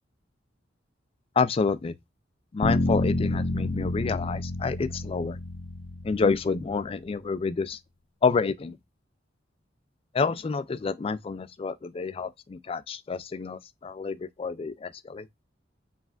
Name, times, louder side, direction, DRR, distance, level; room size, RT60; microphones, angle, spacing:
voice 1, 1.4-1.9 2.5-5.4 6.0-7.8 8.2-8.8 10.1-15.3, left 4 dB, 30° left, 0.3 m, -28 dB
sound 1, 2.6-6.7, left 2 dB, 80° left, 0.6 m, -29 dB
4.8 x 3.3 x 2.3 m
head